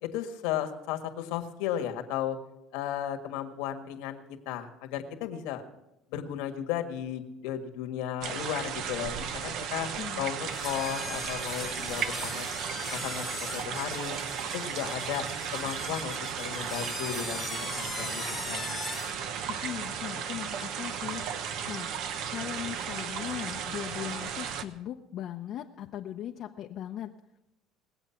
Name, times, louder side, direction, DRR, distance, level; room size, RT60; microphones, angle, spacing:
voice 1, 0.0-2.4 2.7-5.6 6.1-9.9 10.2-12.5 12.9-14.1 14.5-15.3 15.5-18.8, left 10 dB, 85° left, 5 dB, 1.7 m, -35 dB
sound 1, 8.2-24.6, right 7 dB, 65° right, 1.0 m, -35 dB
voice 2, 10.0-10.3 19.5-21.2 21.7-21.9 22.3-27.1, left 11 dB, 55° left, 2 dB, 0.7 m, -38 dB
sound 2, 10.4-19.2, left 4 dB, 20° left, 0.8 m, -40 dB
20.5 x 8.0 x 5.8 m, 0.92 s
cardioid pair, 120°, 0 cm